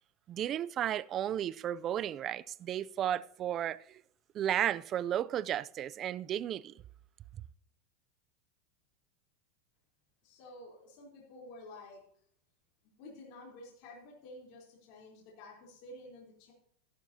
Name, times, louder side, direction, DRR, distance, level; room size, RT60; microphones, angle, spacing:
voice 1, 0.3-4.0 4.3-6.7, right 11 dB, 35° right, 0.4 m, -33 dB
voice 2, 10.2-12.0 13.0-16.5, left 1 dB, 55° left, 3.6 m, -51 dB
12.5 x 12.0 x 2.8 m
supercardioid pair, 135°, 0 cm